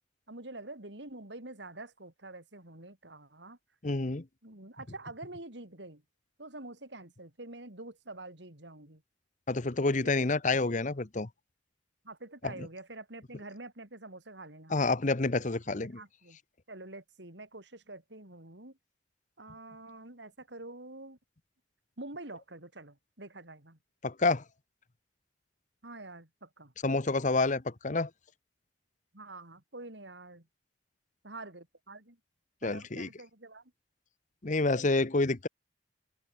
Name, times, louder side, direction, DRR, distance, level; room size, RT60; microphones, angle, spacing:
voice 1, 0.3-3.6 4.4-6.0 6.4-9.0 10.0-10.3 12.0-14.7 15.7-16.4 16.7-18.8 19.4-21.2 22.0-23.8 25.8-26.7 29.1-30.5 31.2-32.2 32.6-33.7, right 2 dB, 70° right, 4.3 m, -47 dB
voice 2, 3.8-4.2 9.5-11.3 12.4-12.5 14.7-16.0 24.0-24.4 26.8-28.1 32.6-33.1 34.4-35.5, left 3 dB, 40° left, 1.0 m, -28 dB
head